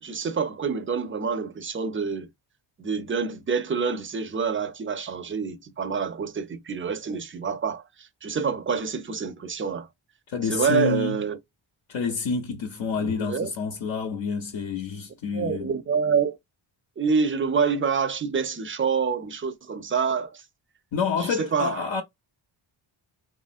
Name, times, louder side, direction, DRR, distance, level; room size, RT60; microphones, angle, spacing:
voice 1, 0.0-2.3 2.8-9.9 10.5-11.4 13.0-13.5 15.3-16.4 17.0-20.4 21.2-21.8, right 5 dB, 25° right, 0.4 m, -27 dB
voice 2, 10.3-11.2 11.9-15.7 20.9-22.0, left 5 dB, 70° left, 0.7 m, -28 dB
2.9 x 2.5 x 2.4 m
wide cardioid pair, 105°, 48 cm